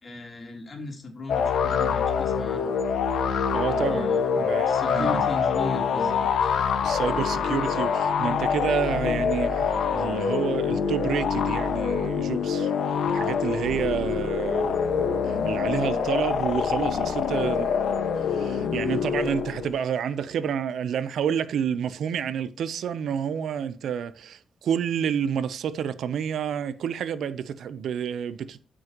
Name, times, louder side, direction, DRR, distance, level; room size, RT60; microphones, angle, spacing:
voice 1, 0.0-2.7 3.7-4.3 4.7-6.5 13.5-13.7, left 3 dB, 30° left, 3.0 m, -36 dB
sound 1, 1.3-19.7, left 6 dB, 85° left, 1.4 m, -25 dB
voice 2, 3.5-5.3 6.8-12.7 13.1-17.7 18.3-28.6, right 8 dB, 85° right, 0.7 m, -29 dB
14.0 x 6.2 x 3.0 m
wide cardioid pair, 140°, 0 cm